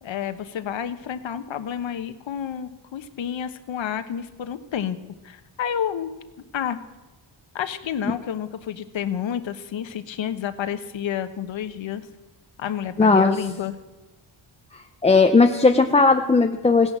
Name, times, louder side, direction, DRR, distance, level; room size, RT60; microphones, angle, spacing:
voice 1, 0.0-5.0 5.2-6.1 6.5-6.8 7.5-12.1 12.6-13.7, left 9 dB, 75° left, 10 dB, 1.2 m, -30 dB
voice 2, 13.0-13.4 14.7-16.9, left 4 dB, 15° left, 6 dB, 0.4 m, -17 dB
17.0 x 10.5 x 7.4 m, 1.1 s
wide cardioid pair, 180°, 46 cm